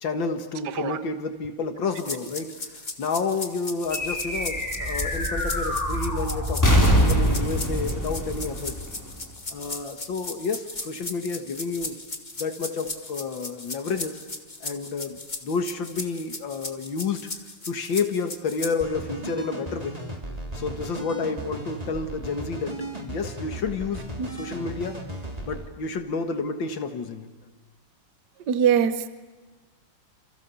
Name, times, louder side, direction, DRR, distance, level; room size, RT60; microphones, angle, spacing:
voice 1, 0.0-8.7 9.5-12.0 12.4-14.2 14.6-17.3 17.7-20.0 20.5-22.8 23.0-25.0 25.4-27.3, left 4 dB, 85° left, 6 dB, 2.4 m, -30 dB
sound 1, 1.9-18.8, left 3 dB, 25° left, 2.1 m, -37 dB
sound 2, 3.9-9.6, equal, 10° left, 5.6 m, -24 dB
sound 3, 18.8-25.7, right 1 dB, 20° right, 3.1 m, -36 dB
voice 2, 28.5-29.1, right 8 dB, 65° right, 12 dB, 1.6 m, -22 dB
29.0 x 29.0 x 7.1 m, 1.3 s
omnidirectional pair, 2.0 m